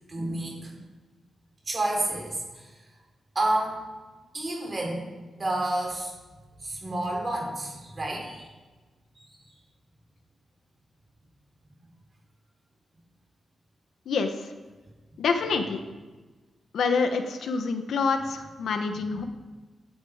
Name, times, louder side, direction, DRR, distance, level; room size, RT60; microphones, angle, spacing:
voice 1, 0.1-0.8 1.7-2.7 3.3-3.8 4.3-5.1 5.4-6.1 6.6-8.5 9.3-9.4, right 1 dB, 30° right, 0 dB, 3.9 m, -30 dB
voice 2, 14.0-14.5 15.2-15.8 16.7-19.2, left 4 dB, 75° left, 7 dB, 1.3 m, -27 dB
16.0 x 10.5 x 5.1 m, 1.3 s
wide cardioid pair, 165°, 0 cm